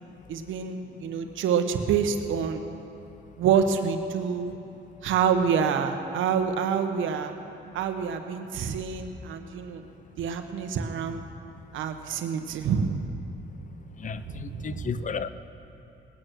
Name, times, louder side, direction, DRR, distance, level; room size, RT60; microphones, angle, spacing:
voice 1, 0.3-2.6 3.4-4.5 5.0-7.3 7.7-9.8 10.2-11.2 11.7-13.0 14.1-15.0, right 7 dB, 80° right, 7 dB, 1.1 m, -27 dB
voice 2, 14.0-15.3, left 6 dB, 40° left, 13 dB, 0.5 m, -33 dB
19.0 x 9.0 x 6.2 m, 2.9 s
cardioid pair, 90°, 20 cm